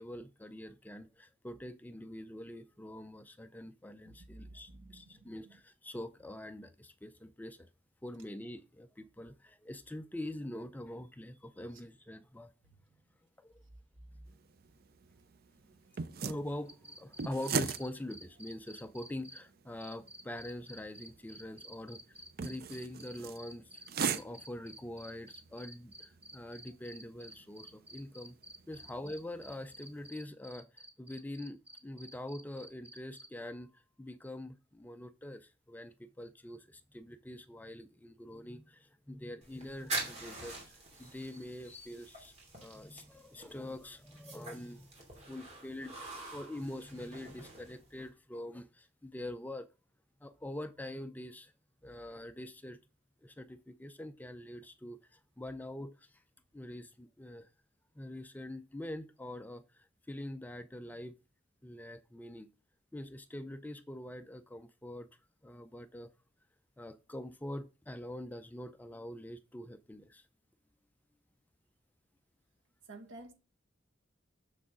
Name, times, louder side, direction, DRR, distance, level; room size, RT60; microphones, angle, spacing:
voice 1, 0.0-7.7 8.0-12.5 13.4-13.6 16.2-28.4 28.7-49.7 50.2-51.5 51.8-52.8 53.2-56.2 56.5-57.5 58.0-61.2 61.6-62.5 62.9-65.1 65.4-66.1 66.8-70.3, left 1 dB, 10° left, 0.4 m, -44 dB
voice 2, 4.0-5.6 11.7-11.8 14.1-14.3 72.9-73.3, right 2 dB, 80° right, 1.4 m, -52 dB
sound 1, 14.3-30.1, right 6 dB, 50° right, 0.5 m, -42 dB
sound 2, 16.7-19.4 19.8-33.3, equal, 10° right, 0.9 m, -51 dB
sound 3, 39.4-48.1, right 2 dB, 35° right, 2.8 m, -45 dB
6.9 x 6.2 x 3.7 m
head